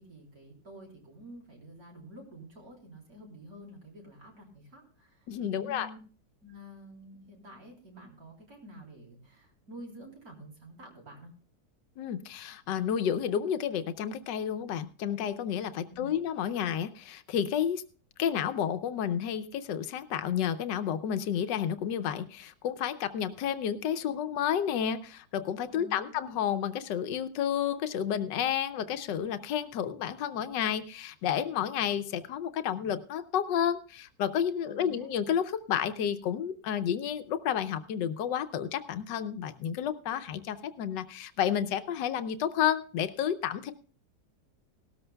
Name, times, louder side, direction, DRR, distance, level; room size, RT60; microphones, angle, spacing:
voice 1, 0.0-5.3 5.6-6.0 6.4-11.3 15.7-16.1 25.7-26.1 34.7-35.1, equal, 50° right, 0 dB, 4.0 m, -49 dB
voice 2, 5.3-5.9 12.0-17.8 18.2-43.7, left 9 dB, 75° left, 10 dB, 1.4 m, -31 dB
18.0 x 13.0 x 2.2 m, 0.39 s
omnidirectional pair, 1.9 m